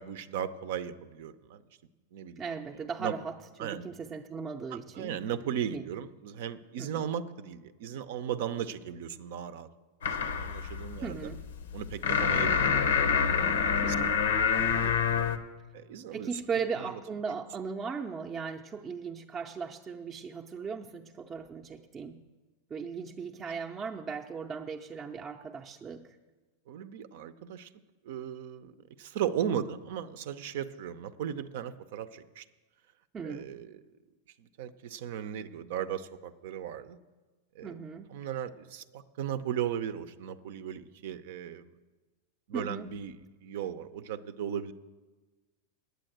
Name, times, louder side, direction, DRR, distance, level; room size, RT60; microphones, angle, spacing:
voice 1, 0.0-1.6 2.1-2.4 3.0-3.2 3.6-3.9 4.7-9.7 10.4-11.3 11.7-13.9 14.6-15.3 15.7-16.3 16.8-16.9 26.7-27.7 28.0-28.7 29.0-32.4 33.2-33.8 34.4-37.0 37.5-37.8 38.1-41.6 42.5-43.1 43.4-44.7, right 9 dB, 65° right, 12 dB, 0.6 m, -36 dB
voice 2, 2.4-5.2 5.7-5.8 6.8-7.1 11.0-11.4 13.8-14.2 16.1-22.2 22.7-26.2 33.1-33.5 37.6-38.1 42.5-42.9, right 5 dB, 25° right, 1 dB, 0.6 m, -38 dB
sound 1, 10.0-15.4, left 6 dB, 85° left, 0.7 m, -27 dB
9.1 x 8.3 x 7.9 m, 1.3 s
hypercardioid pair, 110°, 0 cm